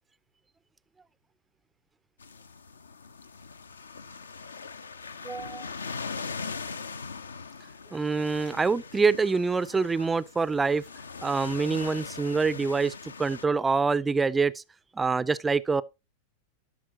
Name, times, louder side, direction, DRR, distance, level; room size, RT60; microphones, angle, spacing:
sound 1, 2.2-13.4, left 4 dB, 75° left, 0.5 m, -41 dB
voice 1, 5.2-5.7 7.9-10.8 11.2-14.6 15.0-15.8, right 4 dB, 15° right, 0.3 m, -26 dB
12.0 x 6.0 x 2.8 m
figure-of-eight pair, 90°, 0 cm